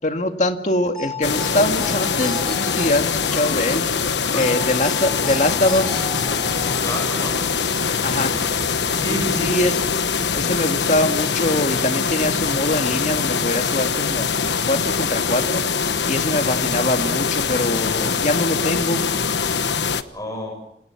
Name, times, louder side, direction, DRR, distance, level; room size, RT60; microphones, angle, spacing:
voice 1, 0.0-3.9 4.3-6.0 8.0-8.3 9.4-9.7 10.3-15.6 16.0-19.0, left 1 dB, 40° left, 6 dB, 2.1 m, -23 dB
sound 1, 1.0-7.8, left 3 dB, 5° left, 7.0 m, -36 dB
sound 2, 1.2-20.0, left 5 dB, 75° left, 1.2 m, -23 dB
voice 2, 4.2-4.5 6.8-7.4 8.0-8.3 9.0-9.6 20.1-20.6, equal, 20° left, 2 dB, 6.9 m, -29 dB
sound 3, 5.0-11.0, equal, 20° right, 5.1 m, -38 dB
29.0 x 26.5 x 6.0 m, 0.74 s
head